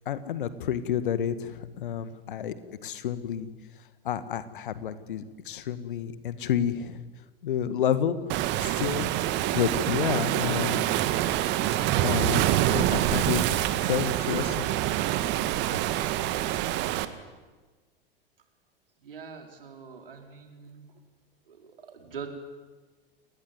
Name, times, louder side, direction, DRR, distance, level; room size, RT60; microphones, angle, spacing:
voice 1, 0.1-2.6 2.8-3.5 4.0-7.0 7.4-8.2 8.6-10.8 12.0-13.4 13.7-14.7, left 9 dB, 60° left, 13 dB, 1.9 m, -30 dB
Waves surf, 8.3-17.0, right 13 dB, 40° right, 1.9 m, -26 dB
voice 2, 19.0-20.9 21.5-22.3, right 6 dB, 65° right, 4 dB, 4.7 m, -43 dB
29.5 x 20.5 x 9.6 m, 1.3 s
figure-of-eight pair, 90°, 29 cm